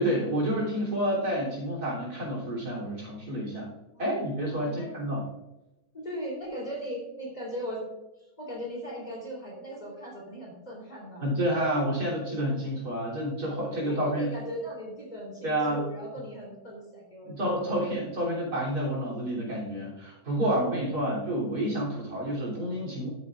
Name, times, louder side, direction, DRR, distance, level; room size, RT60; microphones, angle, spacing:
voice 1, 0.0-3.7 4.0-5.2 11.2-14.3 15.4-15.8 17.3-23.1, right 1 dB, 80° right, -4 dB, 3.7 m, -29 dB
voice 2, 4.6-4.9 5.9-7.8 8.4-11.3 13.7-17.6 20.4-21.4, equal, 25° left, -3 dB, 3.4 m, -38 dB
12.5 x 8.6 x 2.4 m, 0.98 s
omnidirectional pair, 1.6 m